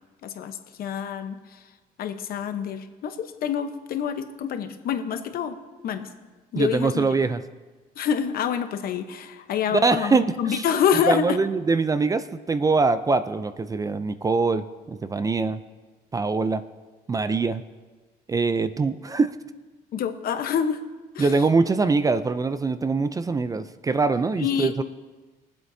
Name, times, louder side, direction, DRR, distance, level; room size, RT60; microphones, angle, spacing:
voice 1, 0.2-1.4 2.0-5.6 5.8-6.1 6.5-7.0 8.0-11.4 19.9-20.8 21.1-21.3 24.4-24.8, left 7 dB, 60° left, 8 dB, 1.0 m, -27 dB
voice 2, 6.6-7.4 9.7-10.6 11.1-15.6 16.1-16.6 17.1-17.6 18.3-19.3 21.2-24.8, right 4 dB, 20° right, 12 dB, 0.4 m, -23 dB
23.5 x 7.9 x 2.7 m, 1.3 s
cardioid pair, 110°, 17 cm